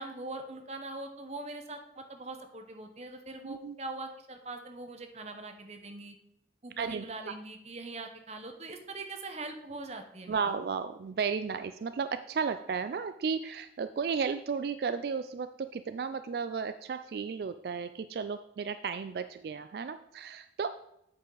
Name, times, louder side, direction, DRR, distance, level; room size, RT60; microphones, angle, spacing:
voice 1, 0.0-6.1 6.6-10.6, right 2 dB, 35° right, 6 dB, 0.9 m, -42 dB
voice 2, 3.4-3.8 6.8-7.3 10.3-20.7, right 5 dB, 55° right, 11 dB, 0.3 m, -34 dB
8.3 x 7.7 x 3.9 m, 0.82 s
head